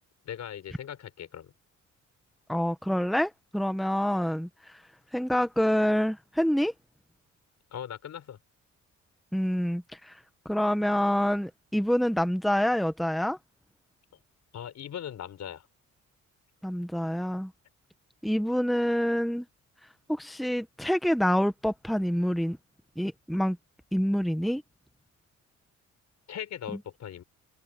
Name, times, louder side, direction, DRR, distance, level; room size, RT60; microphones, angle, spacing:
voice 1, 0.2-1.5 7.7-8.4 14.5-15.7 26.3-27.2, left 9 dB, 65° left, 4.8 m, -39 dB
voice 2, 2.5-4.5 5.1-6.7 9.3-10.1 10.4-13.4 16.6-17.5 18.2-19.5 20.1-22.6 23.0-23.6 23.9-24.6, equal, ahead, 1.2 m, -26 dB
cardioid pair, 90°, 30 cm